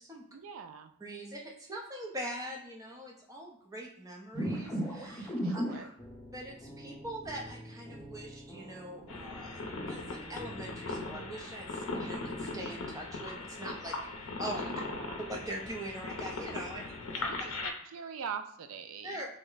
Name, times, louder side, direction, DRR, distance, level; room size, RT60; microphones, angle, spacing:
voice 1, 0.3-0.9 5.4-5.9 14.7-15.2 17.3-19.3, right 6 dB, 70° right, 8 dB, 0.3 m, -43 dB
voice 2, 1.0-5.6 6.3-14.7 15.3-17.2 19.0-19.3, right 1 dB, 15° right, -1 dB, 0.5 m, -43 dB
sound 1, 4.3-11.3, equal, 15° left, 0.8 m, -40 dB
sound 2, 9.1-17.7, left 3 dB, 65° left, 0.6 m, -39 dB
3.2 x 2.0 x 3.8 m, 0.68 s
head